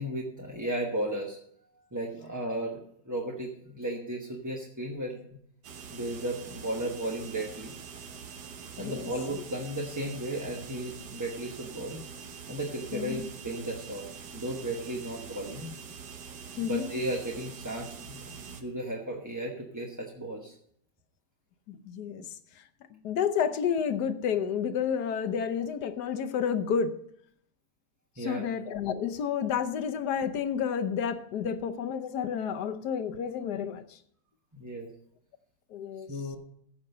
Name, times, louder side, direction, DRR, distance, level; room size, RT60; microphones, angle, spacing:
voice 1, 0.0-1.4 1.9-5.2 5.9-7.8 8.8-12.0 12.5-14.1 14.3-15.7 16.5-20.5 28.2-28.5 34.5-34.9 36.1-36.4, right 1 dB, 15° right, 0.9 m, -35 dB
sound 1, 5.6-18.6, right 6 dB, 70° right, 1.6 m, -45 dB
voice 2, 8.8-9.1 12.9-13.2 16.6-16.8 21.7-22.2 22.9-26.9 28.2-34.0 35.7-36.1, left 7 dB, 70° left, 1.3 m, -30 dB
15.0 x 5.9 x 5.5 m
omnidirectional pair, 1.9 m